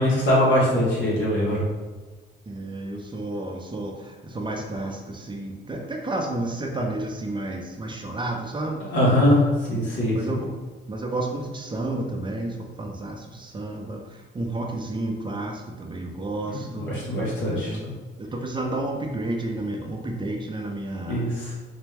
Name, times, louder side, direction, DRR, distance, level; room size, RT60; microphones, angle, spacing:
voice 1, 0.0-1.6 8.9-10.1 16.5-16.6 16.9-17.9 21.1-21.4, left 1 dB, 70° left, -5 dB, 1.2 m, -22 dB
voice 2, 2.5-8.8 10.1-10.6 10.9-16.9 17.4-17.8 18.2-21.2, right 2 dB, 25° right, 1 dB, 0.6 m, -31 dB
4.1 x 2.2 x 3.4 m, 1.3 s
cardioid pair, 90°, 20 cm